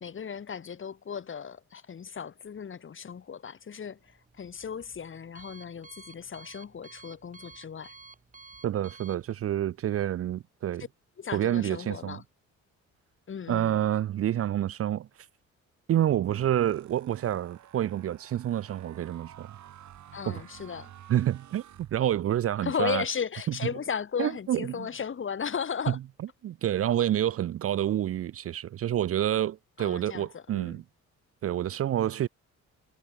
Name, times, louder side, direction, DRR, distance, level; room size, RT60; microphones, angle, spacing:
voice 1, 0.0-8.0 11.2-12.2 13.3-13.8 20.1-20.9 22.6-26.0 29.8-30.8, left 7 dB, 40° left, 2.0 m, -36 dB
Alarm, 3.9-10.3, right 4 dB, 25° right, 3.8 m, -53 dB
voice 2, 8.6-10.8 11.3-12.2 13.5-15.1 15.9-19.5 20.3-20.4 21.1-21.6 21.9-23.0 24.2-24.9 26.4-30.8 31.4-32.3, right 11 dB, 50° right, 0.5 m, -28 dB
sound 1, 16.0-22.5, right 11 dB, 70° right, 2.9 m, -51 dB
cardioid pair, 90°, 30 cm